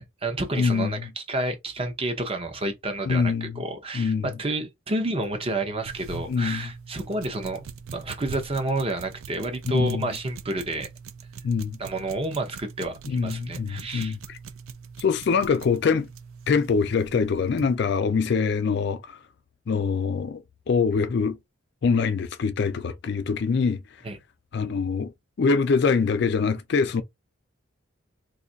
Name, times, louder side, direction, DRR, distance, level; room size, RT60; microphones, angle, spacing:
voice 1, 0.0-7.7 7.9-10.9 11.8-14.2 24.0-24.2, right 2 dB, 25° right, 0.6 m, -30 dB
voice 2, 0.6-1.1 3.1-3.6 3.9-4.3 6.3-6.7 9.7-10.1 11.4-11.8 13.1-14.4 15.0-16.1 16.5-19.2 19.7-20.4 20.7-21.4 21.8-23.8 24.5-25.1 25.4-27.0, left 5 dB, 50° left, 0.3 m, -24 dB
sound 1, 5.8-17.8, right 6 dB, 75° right, 0.4 m, -42 dB
2.6 x 2.4 x 3.8 m
head